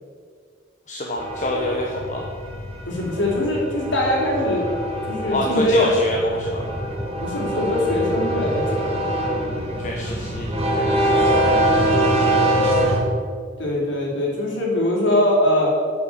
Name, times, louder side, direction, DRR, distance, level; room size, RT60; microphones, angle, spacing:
voice 1, 0.9-2.2 5.3-6.7 9.8-11.7 12.1-13.1, equal, 40° left, -1 dB, 1.1 m, -27 dB
sound 1, 1.2-13.0, right 1 dB, 35° right, 1.6 m, -23 dB
voice 2, 2.9-4.7 5.1-5.9 7.2-9.0 13.6-15.7, left 1 dB, 80° left, -3 dB, 3.4 m, -22 dB
9.4 x 6.2 x 7.9 m, 2.1 s
head